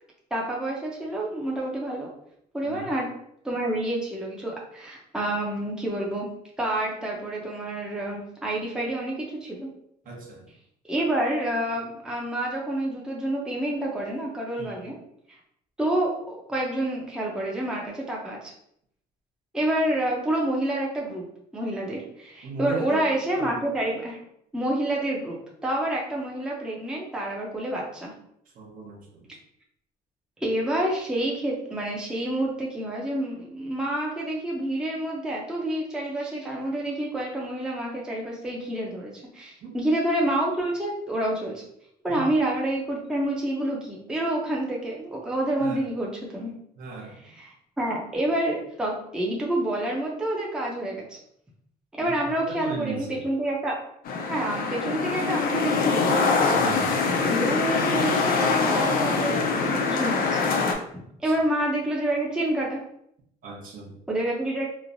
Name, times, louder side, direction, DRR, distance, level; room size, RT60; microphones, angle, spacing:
voice 1, 0.3-2.1 2.5-3.1 3.4-6.3 6.6-9.7 10.9-15.0 15.3-15.4 15.8-18.5 19.5-21.2 21.5-24.2 24.5-28.1 30.4-41.6 42.0-46.5 47.2-51.2 52.0-53.8 54.3-56.2 57.3-60.4 61.2-62.8 64.1-64.7, right 1 dB, 5° right, -3 dB, 0.6 m, -28 dB
voice 2, 10.1-10.5 14.6-14.9 22.4-23.0 23.3-23.6 28.5-29.3 39.6-39.8 42.1-42.3 45.6-45.8 46.8-47.2 52.0-53.2 56.5-56.9 63.4-64.0, right 3 dB, 55° right, -1 dB, 0.8 m, -37 dB
sound 1, 54.1-60.7, left 4 dB, 60° left, 0.5 m, -24 dB
3.1 x 2.1 x 2.5 m, 0.72 s
cardioid pair, 110°, 17 cm